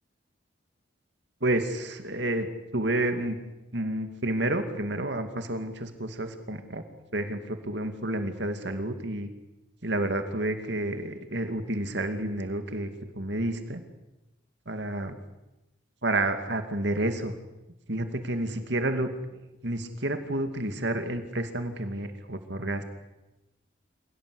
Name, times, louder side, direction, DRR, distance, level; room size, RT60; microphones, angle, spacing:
voice 1, 1.4-2.5 2.7-3.4 3.7-6.8 7.1-9.3 9.8-12.9 13.1-13.8 14.7-15.2 16.0-17.3 17.9-22.8, right 1 dB, 65° right, 7 dB, 2.4 m, -30 dB
27.0 x 18.5 x 9.9 m, 0.99 s
head